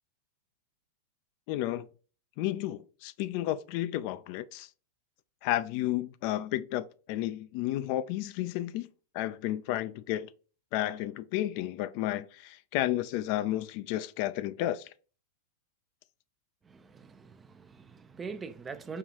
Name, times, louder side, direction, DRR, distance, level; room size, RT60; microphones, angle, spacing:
voice 1, 1.5-1.9 2.4-4.7 5.4-8.9 9.1-10.3 10.7-14.8, left 14 dB, 55° left, 0.3 m, -32 dB
voice 2, 16.6-19.0, right 5 dB, 20° right, 0.4 m, -43 dB
5.5 x 2.3 x 2.8 m
hypercardioid pair, 110°, 0 cm